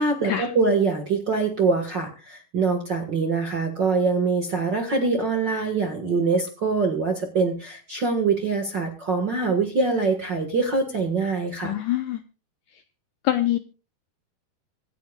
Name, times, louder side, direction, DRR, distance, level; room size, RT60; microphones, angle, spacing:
voice 1, 0.0-11.7, right 4 dB, 50° right, 4 dB, 1.3 m, -24 dB
voice 2, 11.6-12.2 13.2-13.6, left 13 dB, 80° left, 9 dB, 1.8 m, -24 dB
25.5 x 8.6 x 2.4 m, 0.33 s
omnidirectional pair, 4.4 m